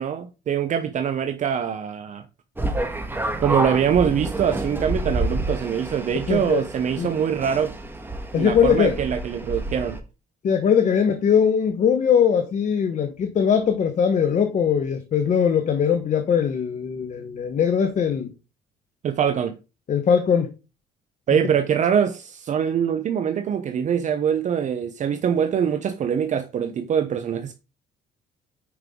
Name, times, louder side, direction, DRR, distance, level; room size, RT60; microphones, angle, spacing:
voice 1, 0.0-2.2 3.4-7.7 8.3-10.0 19.0-19.6 21.3-27.5, right 8 dB, 45° right, 0.8 m, -23 dB
sound 1, 2.6-10.0, right 1 dB, 10° right, 1.6 m, -29 dB
voice 2, 6.3-6.6 7.0-7.1 8.3-8.9 10.4-18.3 19.9-20.5, left 7 dB, 45° left, 1.2 m, -20 dB
9.4 x 5.5 x 3.8 m
cardioid pair, 110°, 17 cm